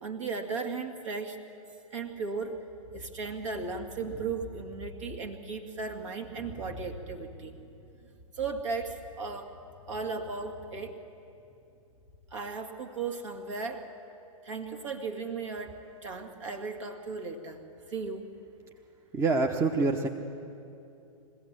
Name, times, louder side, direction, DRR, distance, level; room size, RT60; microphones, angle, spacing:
voice 1, 0.0-1.4 1.9-2.6 2.9-7.5 8.3-9.5 9.9-11.0 12.3-13.8 14.4-17.6 17.9-18.2, right 4 dB, 60° right, 6 dB, 2.1 m, -36 dB
voice 2, 19.1-20.1, right 3 dB, 15° right, 4 dB, 0.9 m, -26 dB
23.0 x 16.0 x 7.5 m, 2.8 s
figure-of-eight pair, 105°, 18 cm